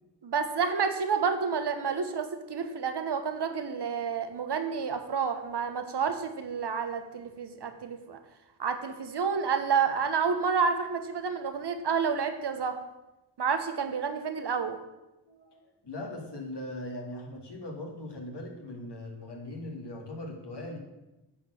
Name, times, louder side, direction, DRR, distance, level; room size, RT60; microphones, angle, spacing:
voice 1, 0.2-8.2 8.6-12.8 13.4-14.8, right 6 dB, 55° right, 8 dB, 1.1 m, -29 dB
voice 2, 15.3-20.8, left 1 dB, 55° left, 1 dB, 2.2 m, -40 dB
8.6 x 4.5 x 6.7 m, 1.0 s
cardioid pair, 55°, 48 cm